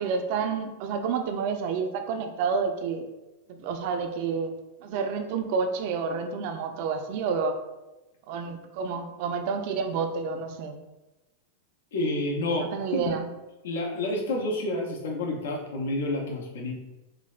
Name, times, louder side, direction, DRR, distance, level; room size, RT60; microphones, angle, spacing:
voice 1, 0.0-3.1 3.5-4.5 4.8-7.6 8.3-10.8 12.6-13.3, right 5 dB, 60° right, 6 dB, 0.3 m, -29 dB
voice 2, 11.9-13.2 13.6-16.7, left 2 dB, 80° left, -1 dB, 0.5 m, -29 dB
3.2 x 2.1 x 2.3 m, 1.0 s
hypercardioid pair, 110°, 0 cm